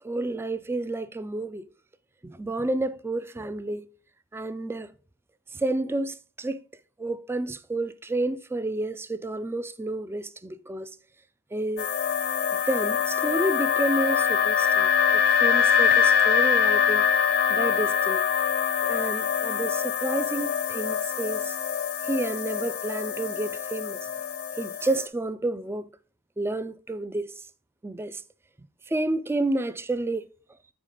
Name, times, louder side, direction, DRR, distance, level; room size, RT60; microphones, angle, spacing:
voice 1, 0.0-1.7 2.2-3.9 4.3-4.9 5.5-6.6 7.0-11.0 11.5-11.9 12.7-17.1 17.5-18.2 18.8-21.6 22.0-24.0 24.6-25.9 26.4-27.3 27.8-28.2 28.9-30.3, right 2 dB, 10° right, 0.3 m, -30 dB
sound 1, 11.8-25.1, left 7 dB, 50° left, 0.6 m, -24 dB
8.9 x 4.9 x 3.7 m
head